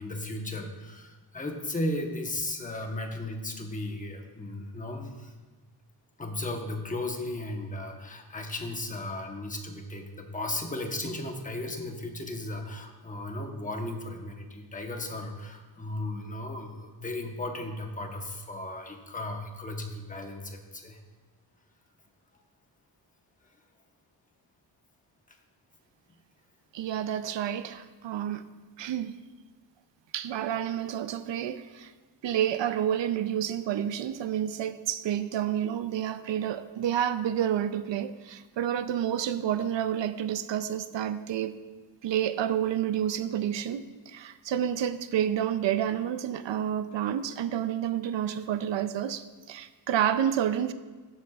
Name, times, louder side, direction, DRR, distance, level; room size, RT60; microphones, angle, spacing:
voice 1, 0.0-5.3 6.2-21.0 26.1-26.2, left 1 dB, 20° left, 3 dB, 1.1 m, -35 dB
voice 2, 26.7-28.4 28.8-29.2 30.1-31.9 32.2-41.6 42.0-50.7, right 10 dB, 85° right, 11 dB, 0.6 m, -29 dB
17.0 x 7.4 x 2.4 m, 1.3 s
wide cardioid pair, 120°, 43 cm